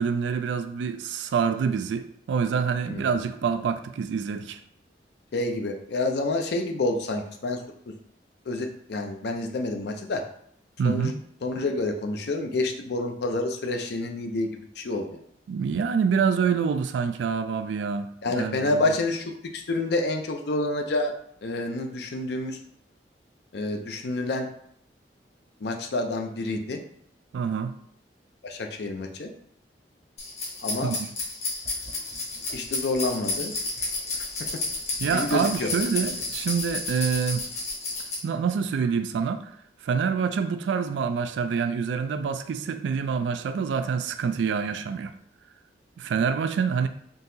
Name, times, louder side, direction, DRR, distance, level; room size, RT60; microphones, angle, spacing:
voice 1, 0.0-4.6 10.8-11.2 15.5-18.9 27.3-27.7 30.8-31.0 35.0-37.5 38.2-39.5 39.8-45.1 46.0-46.9, right 6 dB, 85° right, 0.3 m, -26 dB
voice 2, 5.3-7.6 8.5-10.2 10.8-11.1 11.4-15.2 18.2-21.1 21.4-22.6 23.5-24.5 25.6-26.8 28.4-29.3 30.6-30.9 32.5-33.5 35.1-35.7 36.0-36.2, left 2 dB, 65° left, 0.5 m, -28 dB
sound 1, 30.2-38.1, left 3 dB, 40° left, 1.0 m, -31 dB
3.8 x 2.8 x 2.6 m
head